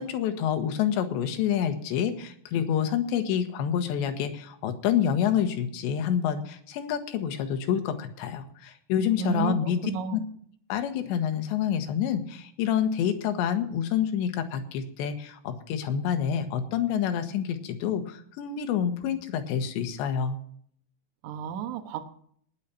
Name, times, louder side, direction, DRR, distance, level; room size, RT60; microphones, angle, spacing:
voice 1, 0.0-10.2 10.7-20.4, left 9 dB, 80° left, 7 dB, 3.5 m, -28 dB
voice 2, 9.2-9.6 9.8-10.2 21.2-22.0, right 8 dB, 75° right, 8 dB, 1.7 m, -31 dB
19.0 x 6.9 x 5.8 m, 0.62 s
omnidirectional pair, 5.2 m